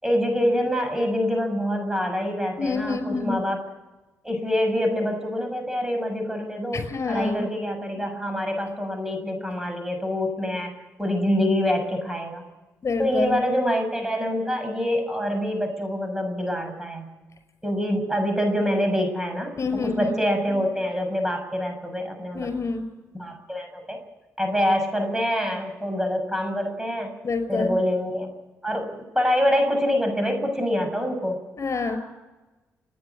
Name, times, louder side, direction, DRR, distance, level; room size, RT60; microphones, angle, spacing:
voice 1, 0.0-3.6 4.2-10.7 11.0-12.4 13.0-17.1 17.6-19.6 19.8-22.5 23.1-24.0 24.4-27.1 27.5-28.3 28.6-31.4, equal, 10° right, 5 dB, 7.0 m, -25 dB
voice 2, 2.6-3.4 6.7-7.4 12.8-13.4 19.5-20.1 22.3-22.9 27.2-27.7 31.6-32.0, left 4 dB, 50° left, 9 dB, 5.4 m, -27 dB
30.0 x 10.5 x 8.6 m, 1.1 s
supercardioid pair, 55°, 6 cm